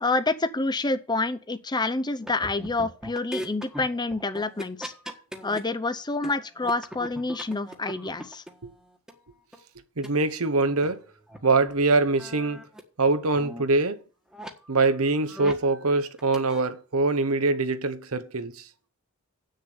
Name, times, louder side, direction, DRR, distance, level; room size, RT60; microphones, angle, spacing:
voice 1, 0.0-4.9 5.4-8.4, left 3 dB, 20° left, 0.7 m, -28 dB
sound 1, 2.2-5.6 6.0-9.1 9.5-9.6 10.0-10.1 10.4-10.5 10.8-10.9 11.3-11.4 11.7-12.8 13.1-13.6 14.3-14.5 15.0-15.8 16.0-16.6, equal, 5° right, 1.5 m, -39 dB
voice 2, 10.0-11.0 11.4-12.6 13.0-14.0 14.7-18.6, right 3 dB, 70° right, 1.1 m, -23 dB
8.7 x 6.6 x 7.9 m
head